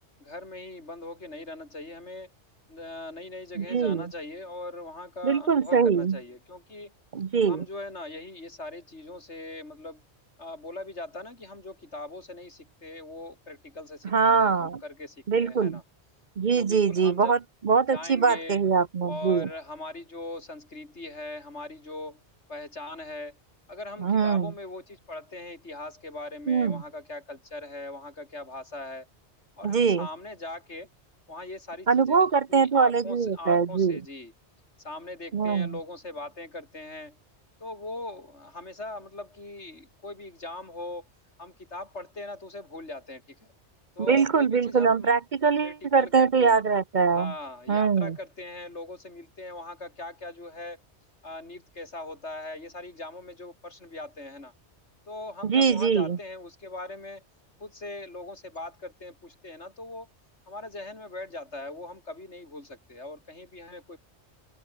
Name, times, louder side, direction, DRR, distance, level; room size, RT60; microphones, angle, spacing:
voice 1, 0.2-2.3 2.7-6.9 7.5-10.0 10.4-15.8 16.5-17.4 17.9-18.6 19.1-22.2 22.5-23.4 23.7-29.1 29.6-30.9 31.3-34.3 34.8-37.2 37.6-41.0 41.4-43.5 44.0-45.1 45.6-46.6 47.1-50.8 51.2-54.5 55.1-57.2 57.6-60.1 60.5-64.0, left 2 dB, 80° left, 5.0 m, -40 dB
voice 2, 3.6-4.0 5.2-6.2 7.1-7.6 14.0-14.8 15.3-15.8 16.4-17.4 17.6-19.5 24.0-24.5 26.5-26.8 29.6-30.1 31.9-34.0 35.3-35.8 44.1-47.3 47.7-48.2 55.4-56.2, right 5 dB, 50° right, 0.8 m, -23 dB
open air
omnidirectional pair, 1.2 m